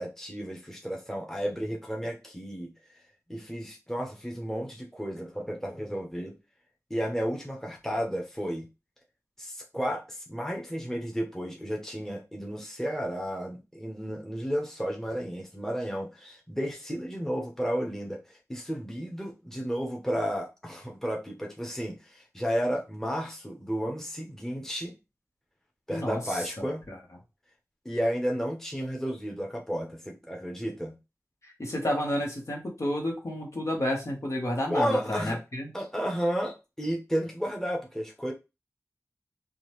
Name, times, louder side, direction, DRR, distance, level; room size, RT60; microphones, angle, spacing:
voice 1, 0.0-2.7 3.3-6.3 6.9-8.7 9.4-24.9 25.9-26.8 27.8-31.0 34.7-35.4 35.7-38.3, equal, 5° left, 0 dB, 0.9 m, -32 dB
voice 2, 25.9-27.0 31.4-35.7, left 1 dB, 60° left, -1 dB, 1.3 m, -31 dB
3.7 x 2.4 x 3.1 m, 0.26 s
wide cardioid pair, 60°, 6 cm